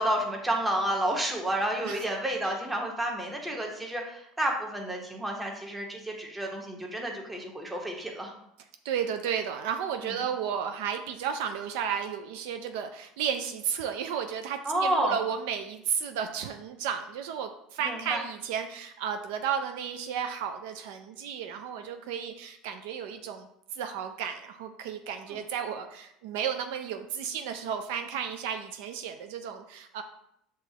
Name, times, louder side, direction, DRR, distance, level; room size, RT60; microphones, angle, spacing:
voice 1, 0.0-8.3 10.0-10.2 14.6-15.1 17.8-18.2 25.3-25.4, right 1 dB, 15° right, 1 dB, 0.9 m, -30 dB
voice 2, 8.8-30.0, right 8 dB, 75° right, 7 dB, 0.3 m, -33 dB
5.9 x 2.4 x 2.8 m, 0.76 s
supercardioid pair, 95°, 0 cm